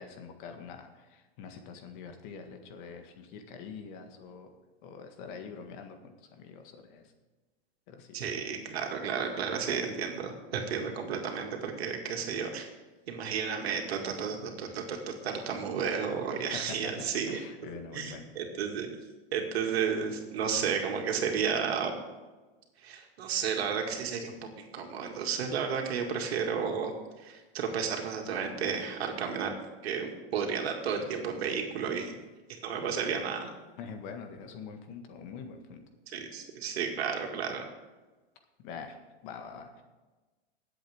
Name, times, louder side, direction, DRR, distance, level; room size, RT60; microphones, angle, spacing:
voice 1, 0.0-4.5 4.8-7.1 7.9-8.3 16.4-18.3 33.8-35.8 38.6-39.0 39.2-39.8, left 6 dB, 55° left, 6 dB, 1.8 m, -45 dB
voice 2, 8.1-12.7 13.1-17.4 17.9-18.9 19.3-22.0 22.8-26.9 27.2-29.5 29.8-32.2 32.5-33.5 36.1-37.7, right 6 dB, 80° right, 2 dB, 2.3 m, -32 dB
21.0 x 8.0 x 3.6 m, 1.2 s
hypercardioid pair, 125°, 31 cm